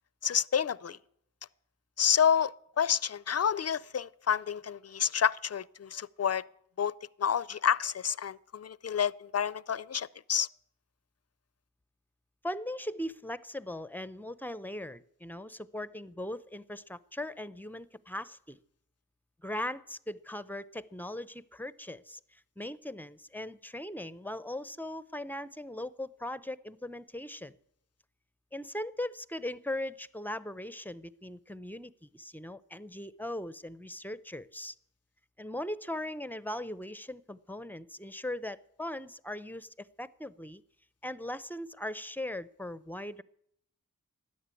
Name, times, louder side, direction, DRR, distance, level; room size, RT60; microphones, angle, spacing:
voice 1, 0.2-1.0 2.0-6.4 6.8-6.9 7.2-10.5, left 8 dB, 45° left, 0.5 m, -29 dB
voice 2, 12.4-18.6 19.4-27.5 28.5-34.7 35.4-40.6 41.0-43.2, left 1 dB, 5° left, 0.6 m, -39 dB
13.5 x 9.6 x 8.4 m
cardioid pair, 40°, 34 cm